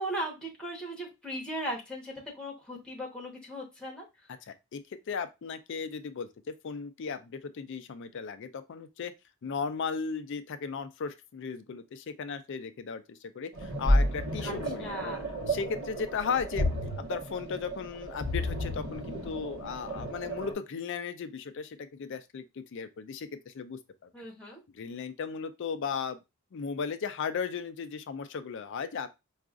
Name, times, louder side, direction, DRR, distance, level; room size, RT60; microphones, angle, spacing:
voice 1, 0.0-4.0 14.4-14.5 14.8-15.3 24.1-24.6, right 1 dB, 5° left, 1.0 m, -37 dB
voice 2, 4.4-4.8 5.1-6.3 6.6-9.1 9.4-15.2 15.5-16.7 17.0-24.1 24.7-26.2 26.5-29.1, left 6 dB, 55° left, 0.4 m, -36 dB
sound 1, 13.5-20.5, equal, 60° right, 1.2 m, -31 dB
4.8 x 2.4 x 2.4 m
head